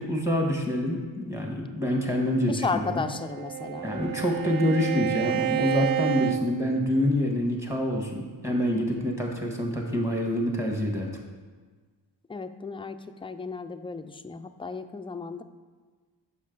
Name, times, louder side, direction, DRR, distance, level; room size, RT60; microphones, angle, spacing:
voice 1, 0.0-2.6 3.8-11.2, left 1 dB, 5° right, 1 dB, 1.6 m, -26 dB
voice 2, 2.5-3.9 12.3-15.4, left 4 dB, 15° left, 9 dB, 0.4 m, -34 dB
Bowed string instrument, 2.8-7.3, right 13 dB, 55° right, 0.5 m, -30 dB
6.6 x 5.3 x 3.9 m, 1.4 s
cardioid pair, 40°, 45 cm